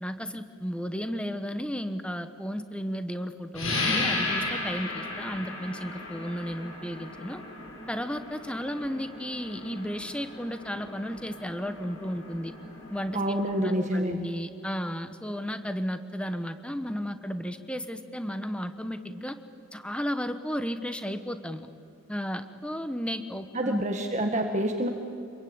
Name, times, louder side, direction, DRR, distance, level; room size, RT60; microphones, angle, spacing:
voice 1, 0.0-7.4 7.9-12.5 12.9-13.2 13.6-19.4 19.7-21.7 22.1-23.8, equal, 5° left, 9 dB, 1.1 m, -34 dB
sound 1, 3.5-13.8, left 2 dB, 85° left, 7.6 m, -35 dB
voice 2, 13.1-14.2 23.5-24.9, right 1 dB, 35° right, 4 dB, 1.5 m, -27 dB
26.5 x 22.0 x 8.8 m, 2.6 s
head